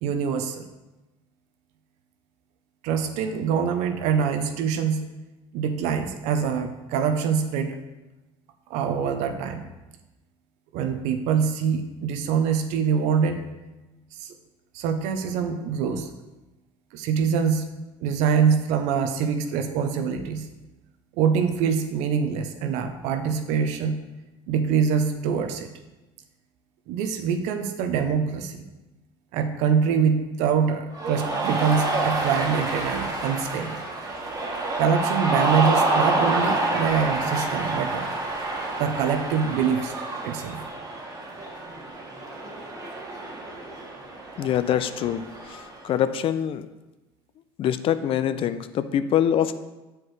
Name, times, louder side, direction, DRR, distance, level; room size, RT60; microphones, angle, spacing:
voice 1, 0.0-0.7 2.8-5.1 5.5-7.8 8.7-9.7 10.7-13.4 14.1-14.3 14.7-16.1 16.9-17.7 18.0-20.5 21.2-24.0 24.5-25.7 26.9-28.7 29.3-33.8 34.8-38.1 38.8-39.9 40.2-40.6, right 6 dB, 70° right, 6 dB, 0.7 m, -24 dB
Cheering, 30.9-45.8, right 2 dB, 30° right, 1.4 m, -28 dB
voice 2, 44.4-45.2 45.8-46.6 47.6-49.6, left 10 dB, 50° left, 12 dB, 0.4 m, -24 dB
7.3 x 4.5 x 3.2 m, 1.1 s
supercardioid pair, 85°, 12 cm